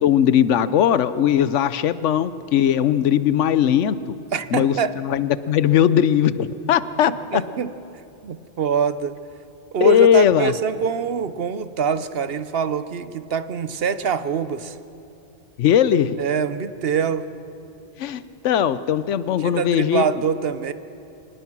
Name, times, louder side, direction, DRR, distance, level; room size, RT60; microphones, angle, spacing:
voice 1, 0.0-4.2 4.5-7.4 9.8-10.5 15.6-16.2 18.0-20.0, left 9 dB, 90° left, 15 dB, 1.0 m, -19 dB
voice 2, 4.3-4.9 7.0-7.7 8.2-9.2 9.7-14.8 16.2-17.3 19.4-20.7, right 6 dB, 60° right, 13 dB, 0.9 m, -24 dB
25.0 x 19.0 x 6.1 m, 2.7 s
omnidirectional pair, 1.2 m